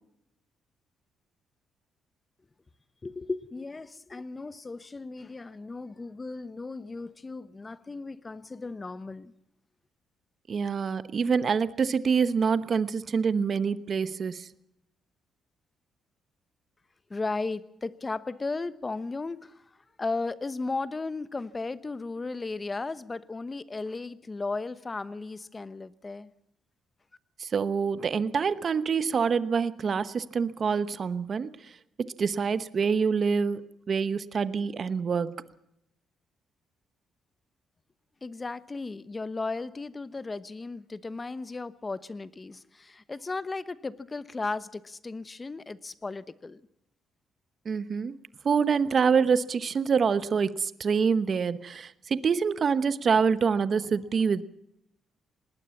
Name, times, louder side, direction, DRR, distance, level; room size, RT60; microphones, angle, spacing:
voice 1, 3.0-9.3 17.1-26.3 38.2-46.6, left 3 dB, 25° left, 1.0 m, -35 dB
voice 2, 10.5-14.5 27.4-31.7 32.0-35.5 47.6-48.2 48.4-54.4, right 6 dB, 45° right, 1.0 m, -26 dB
19.5 x 19.5 x 7.2 m
cardioid pair, 90°, 0 cm